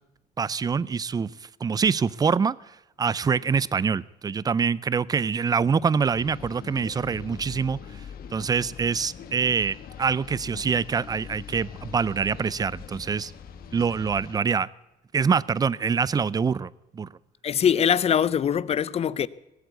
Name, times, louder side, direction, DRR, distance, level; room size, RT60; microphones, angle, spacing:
voice 1, 0.4-2.6 3.0-8.0 8.3-13.3 13.7-14.7 15.1-17.1, right 6 dB, 25° right, 0.4 m, -25 dB
sound 1, 6.1-14.4, left 7 dB, 60° left, 1.4 m, -43 dB
voice 2, 17.4-19.3, left 8 dB, 35° left, 0.5 m, -22 dB
18.5 x 8.2 x 8.2 m
cardioid pair, 110°, 17 cm